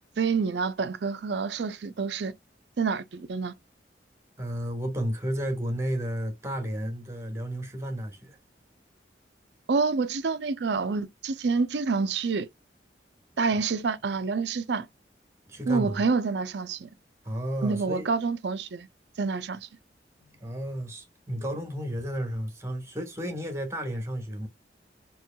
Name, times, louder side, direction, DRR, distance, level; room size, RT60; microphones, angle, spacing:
voice 1, 0.2-2.3 2.8-3.5 9.7-12.5 13.4-14.9 15.7-16.9 17.6-18.9 19.2-19.7, right 4 dB, 70° right, 0.5 m, -27 dB
voice 2, 4.4-8.4 15.5-16.1 17.2-18.1 20.2-24.5, equal, 15° right, 1.2 m, -32 dB
4.5 x 3.0 x 2.2 m
head